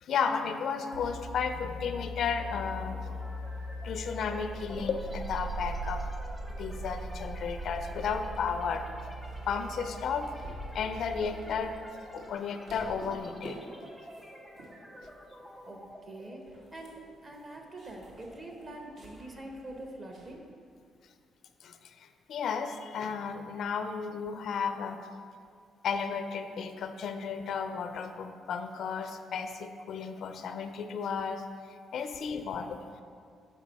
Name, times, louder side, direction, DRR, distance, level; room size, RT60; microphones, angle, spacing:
voice 1, 0.0-3.2 3.8-6.0 6.6-8.9 9.5-10.3 10.7-11.7 12.1-13.6 21.6-25.0 25.8-32.8, left 6 dB, 70° left, 8 dB, 0.4 m, -33 dB
sound 1, 0.9-11.2, right 1 dB, 90° right, 0.6 m, -40 dB
sound 2, 2.4-20.2, equal, 10° right, 0.8 m, -51 dB
sound 3, 9.2-11.9 12.2-12.4 12.7-13.5 13.8-14.3 14.5-14.7 15.0-15.6 15.9-16.0 16.3-20.3, equal, 65° right, 1.6 m, -49 dB
voice 2, 16.1-20.4, right 1 dB, 35° right, 1 dB, 1.1 m, -44 dB
6.2 x 5.2 x 4.1 m, 2.2 s
cardioid pair, 90°, 0 cm